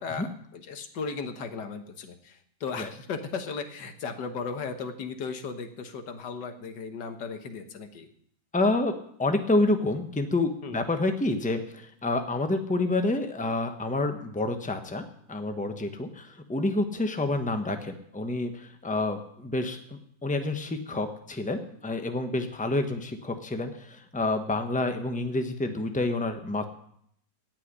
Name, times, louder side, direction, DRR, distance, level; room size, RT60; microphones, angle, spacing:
voice 1, 0.0-8.1 10.6-10.8, left 5 dB, 90° left, 8 dB, 1.9 m, -36 dB
voice 2, 8.5-8.9 9.2-15.0 15.3-26.6, left 2 dB, 5° left, 6 dB, 1.0 m, -28 dB
17.5 x 5.8 x 10.0 m, 0.68 s
omnidirectional pair, 1.8 m